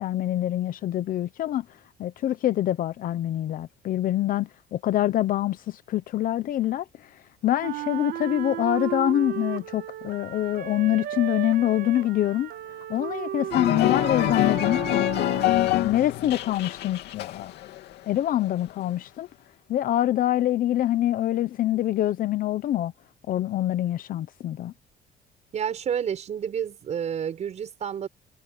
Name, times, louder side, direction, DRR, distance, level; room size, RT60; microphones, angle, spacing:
voice 1, 0.0-1.6 2.0-6.8 7.4-12.5 12.9-17.5 18.1-19.3 19.7-22.9 23.3-24.7, left 13 dB, 55° left, 0.8 m, -25 dB
Wind instrument woodwind instrument, 7.6-15.8, right 12 dB, 70° right, 1.4 m, -34 dB
sound 1, 13.5-17.9 18.2-18.6, left 14 dB, 85° left, 2.6 m, -25 dB
voice 2, 25.5-28.1, right 8 dB, 40° right, 6.3 m, -29 dB
cardioid pair, 155°, 17 cm